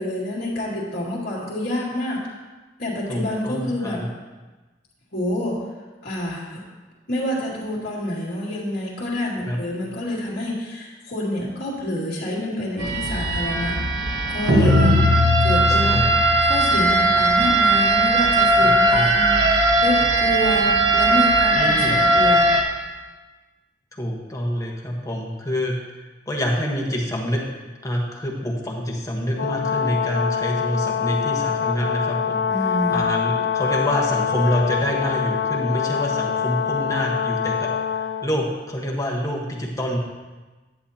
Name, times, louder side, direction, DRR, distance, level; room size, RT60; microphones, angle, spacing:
voice 1, 0.0-2.2 2.8-4.0 5.1-5.6 6.0-6.6 7.1-13.8 14.3-14.9 15.4-16.0 16.4-22.5 32.5-33.1, left 1 dB, 60° left, -9 dB, 2.3 m, -27 dB
voice 2, 3.1-4.1 9.4-9.6 14.5-15.1 15.7-16.2 18.6-19.1 21.5-22.0 24.0-25.8 26.3-40.0, equal, 20° left, -2 dB, 1.3 m, -26 dB
sound 1, 12.8-22.6, right 1 dB, 90° right, 1.1 m, -18 dB
Brass instrument, 29.4-38.3, left 8 dB, 85° left, 0.7 m, -24 dB
10.5 x 8.0 x 2.9 m, 1.2 s
head